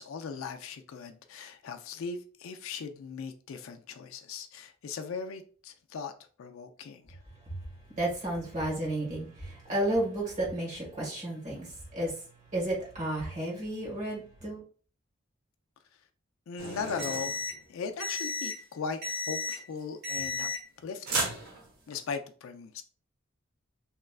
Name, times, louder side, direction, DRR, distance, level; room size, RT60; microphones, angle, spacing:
voice 1, 0.0-6.1 6.4-7.2 16.5-17.4 17.7-20.5 20.8-21.2 21.9-22.8, left 5 dB, 75° left, 0.4 m, -38 dB
voice 2, 7.3-14.6, right 1 dB, 35° right, 1.4 m, -33 dB
sound 1, 16.6-17.6 18.0-18.6 19.0-19.6 20.0-20.8 21.1-21.9, left 1 dB, 55° right, 0.9 m, -33 dB
2.9 x 2.4 x 2.3 m
head